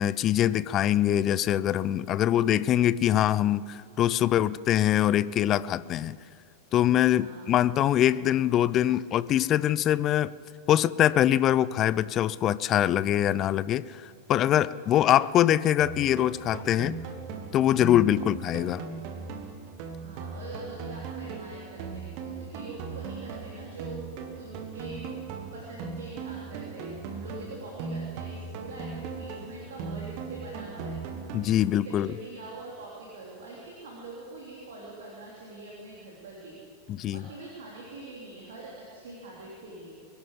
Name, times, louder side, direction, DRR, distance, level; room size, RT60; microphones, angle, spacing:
voice 1, 0.0-6.2 6.7-10.3 10.7-17.0 17.5-18.8 31.3-32.1 36.9-37.2, left 12 dB, 30° left, 18 dB, 0.4 m, -23 dB
voice 2, 4.0-4.5 7.1-7.5 14.3-15.1 20.0-24.1 24.4-25.1 25.5-31.0 31.7-36.6 37.1-39.9, right 2 dB, 60° right, -4 dB, 3.2 m, -44 dB
sound 1, 15.8-31.8, right 5 dB, 45° right, 1.6 m, -38 dB
22.5 x 11.5 x 5.3 m, 2.4 s
figure-of-eight pair, 90°, 0 cm